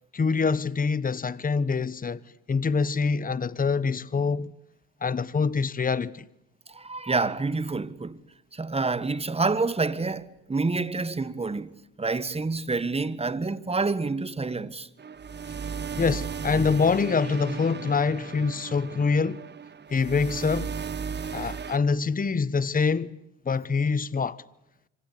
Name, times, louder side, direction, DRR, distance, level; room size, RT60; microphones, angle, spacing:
voice 1, 0.1-2.2 2.5-4.5 5.0-6.3 16.0-19.4 19.9-20.7 21.3-23.2 23.4-24.4, left 5 dB, 30° left, 1.1 m, -25 dB
voice 2, 6.7-8.2 8.5-11.7 12.0-14.9, right 3 dB, 20° right, 1.6 m, -28 dB
sound 1, 15.0-21.8, right 6 dB, 35° right, 1.1 m, -36 dB
26.0 x 25.5 x 8.3 m
cardioid pair, 90°, 30 cm